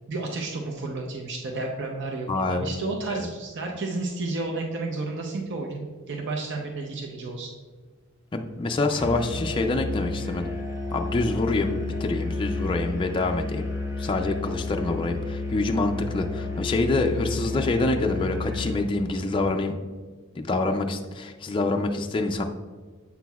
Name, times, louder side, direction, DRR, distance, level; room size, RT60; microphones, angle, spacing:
voice 1, 0.1-7.5, right 3 dB, 55° right, 0 dB, 0.7 m, -31 dB
voice 2, 2.3-2.7 3.1-3.3 8.3-10.5 10.9-13.7 14.0-19.7 20.4-22.4, left 2 dB, 25° left, 3 dB, 0.3 m, -26 dB
Musical instrument, 8.9-18.9, left 3 dB, 15° right, 1.1 m, -31 dB
8.2 x 5.9 x 2.3 m, 1.5 s
head